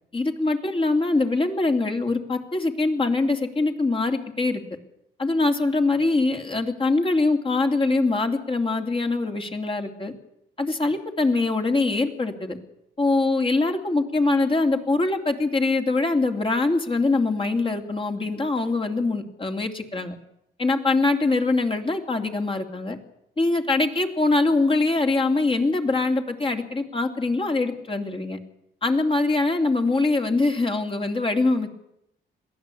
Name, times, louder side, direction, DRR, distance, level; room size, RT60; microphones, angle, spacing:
voice 1, 0.1-4.6 5.2-10.1 10.6-12.6 13.0-20.1 20.6-23.0 23.4-28.4 28.8-31.7, left 3 dB, 25° left, 5 dB, 2.8 m, -23 dB
22.0 x 15.0 x 8.5 m, 0.80 s
cardioid pair, 90°, 20 cm